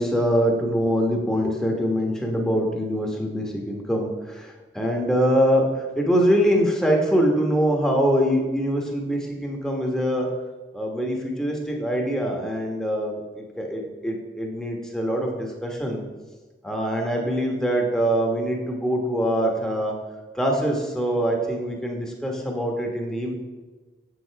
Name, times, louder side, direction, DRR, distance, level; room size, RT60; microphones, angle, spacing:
voice 1, 0.0-10.3 10.7-16.0 16.6-19.9 20.3-23.3, equal, 5° left, 0 dB, 1.3 m, -24 dB
8.0 x 6.8 x 4.6 m, 1.3 s
head